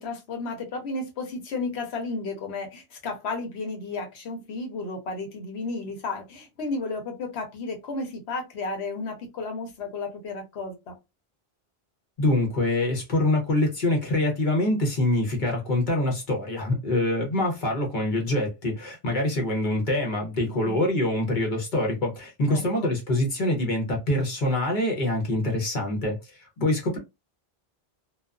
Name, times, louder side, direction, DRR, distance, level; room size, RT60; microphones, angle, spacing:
voice 1, 0.0-11.0 20.5-20.8 22.5-22.9, left 3 dB, 85° left, 1.1 m, -33 dB
voice 2, 12.2-27.0, left 1 dB, 50° left, 0.9 m, -25 dB
2.4 x 2.3 x 2.2 m
omnidirectional pair, 1.1 m